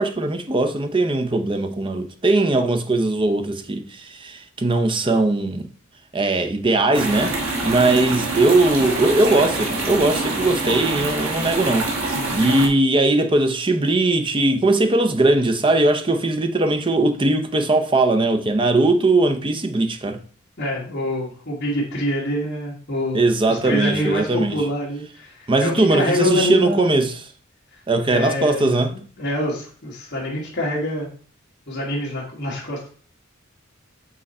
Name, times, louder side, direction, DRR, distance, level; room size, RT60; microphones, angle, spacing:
voice 1, 0.0-5.7 6.1-7.3 7.6-11.9 12.3-20.2 23.1-24.6 25.5-27.3 27.9-28.9, right 2 dB, 25° right, 0.6 m, -19 dB
sound 1, 6.9-12.7, right 2 dB, 90° right, 1.6 m, -25 dB
voice 2, 12.1-12.7 20.6-23.2 23.5-26.9 28.0-31.1 31.7-32.9, left 1 dB, 50° left, 1.7 m, -26 dB
6.5 x 3.9 x 4.2 m
head